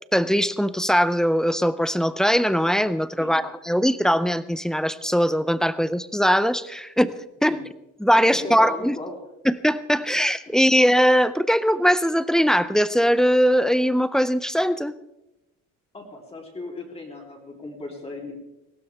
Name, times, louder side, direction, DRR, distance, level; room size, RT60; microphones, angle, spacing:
voice 1, 0.1-7.1 7.4-7.6 8.0-9.0 9.4-14.9, equal, ahead, 14 dB, 0.4 m, -21 dB
voice 2, 8.1-9.1 15.9-18.4, left 2 dB, 20° left, -1 dB, 3.0 m, -36 dB
18.5 x 16.5 x 3.4 m, 0.93 s
cardioid pair, 145°, 31 cm